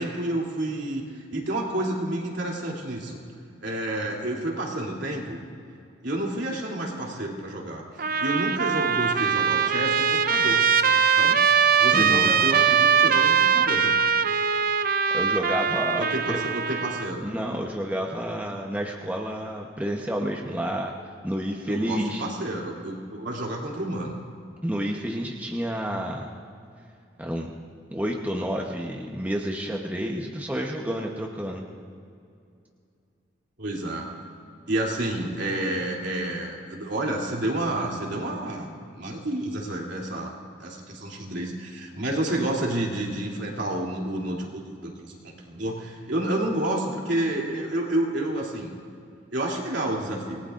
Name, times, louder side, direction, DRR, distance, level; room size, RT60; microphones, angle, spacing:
voice 1, 0.0-3.2 3.6-5.4 6.0-7.8 8.2-10.6 11.2-11.4 11.8-13.9 16.0-17.2 21.7-24.2 33.6-34.1 34.7-40.3 40.6-48.7 49.3-50.4, right 1 dB, 70° right, -2 dB, 3.1 m, -29 dB
Trumpet, 8.0-17.1, right 6 dB, 50° right, 0.6 m, -22 dB
voice 2, 11.9-12.3 15.1-16.4 17.2-20.9 21.2-22.2 24.6-26.3 27.2-27.5 27.9-31.6, equal, 10° right, -1 dB, 1.0 m, -30 dB
27.0 x 19.0 x 2.6 m, 2.4 s
head